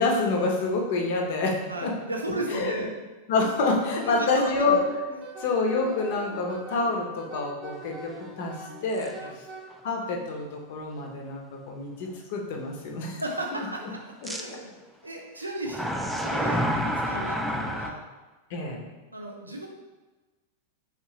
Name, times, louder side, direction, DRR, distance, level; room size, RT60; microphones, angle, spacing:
voice 1, 0.0-1.6 1.8-1.9 2.5-2.8 3.3-8.1 8.4-8.5 8.8-9.1 9.8-13.2 18.5-18.8, left 3 dB, 50° left, 0 dB, 0.7 m, -27 dB
voice 2, 1.7-2.9 4.1-4.8 9.2-9.3 13.2-14.8 15.0-18.1 19.1-19.7, right 1 dB, 80° right, 1 dB, 0.4 m, -35 dB
Wind instrument woodwind instrument, 3.9-9.6, right 2 dB, 35° right, 0.7 m, -42 dB
sound 1, 9.0-9.1 9.7-9.8 14.2-14.4 15.7-17.9, equal, ahead, 0.3 m, -28 dB
3.6 x 3.0 x 2.8 m, 1.2 s
figure-of-eight pair, 90°, 0 cm